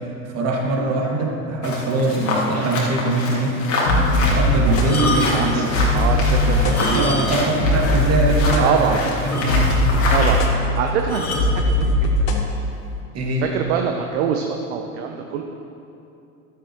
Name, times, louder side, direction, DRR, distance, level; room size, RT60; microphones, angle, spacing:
voice 1, 0.3-3.6 4.2-5.8 6.5-9.7 13.1-13.5, right 2 dB, 35° right, -1 dB, 2.2 m, -22 dB
sound 1, 1.6-10.5, left 2 dB, 30° left, 2.4 m, -27 dB
sound 2, 3.8-12.4, left 1 dB, 65° left, 1.3 m, -20 dB
voice 2, 4.7-7.1 8.6-9.0 10.1-12.1 13.4-15.4, right 7 dB, 55° right, 4 dB, 0.9 m, -25 dB
sound 3, 4.8-5.6 6.6-7.6 7.8-8.0 8.5-8.6 8.8-8.9 9.3-10.0 11.1-11.6 12.4-12.7, left 2 dB, 85° left, 1.3 m, -27 dB
13.5 x 12.0 x 3.1 m, 2.7 s
figure-of-eight pair, 70°, 43 cm